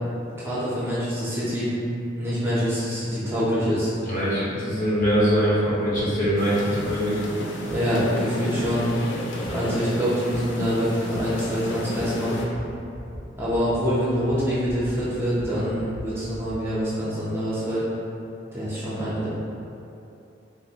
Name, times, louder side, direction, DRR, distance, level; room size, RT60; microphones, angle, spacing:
voice 1, 0.4-1.7 2.2-3.9 7.7-8.9 9.5-12.5 13.4-17.9 18.5-19.3, equal, 15° right, -10 dB, 0.6 m, -25 dB
voice 2, 4.0-7.1 9.4-9.7, equal, 45° left, -9 dB, 1.0 m, -23 dB
sound 1, 5.9-6.1 6.9-7.0 7.7-7.8 8.6-8.7 9.4-9.5 10.3-10.4 11.1-11.3 12.0-12.1 12.4-12.7 12.9-13.2 13.5-13.8 14.1-15.0 15.2-16.6, equal, 55° right, 0.5 m, -40 dB
sound 2, 6.4-12.5, left 1 dB, 70° left, 0.4 m, -33 dB
Bowed string instrument, 6.7-9.5, right 1 dB, 25° left, 0.7 m, -45 dB
3.5 x 2.5 x 2.8 m, 2.8 s
head